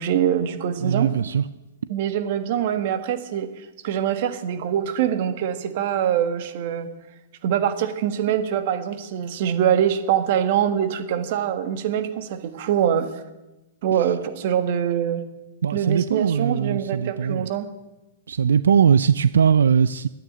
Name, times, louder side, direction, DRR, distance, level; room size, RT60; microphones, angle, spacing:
voice 1, 0.0-1.1 1.9-6.9 7.4-13.2 13.8-15.2 15.7-17.7, right 9 dB, 55° right, 10 dB, 1.6 m, -24 dB
voice 2, 0.8-1.5 14.0-14.1 15.6-17.5 18.3-20.1, right 7 dB, 90° right, 16 dB, 0.4 m, -20 dB
12.5 x 9.5 x 9.0 m, 1.0 s
hypercardioid pair, 140°, 0 cm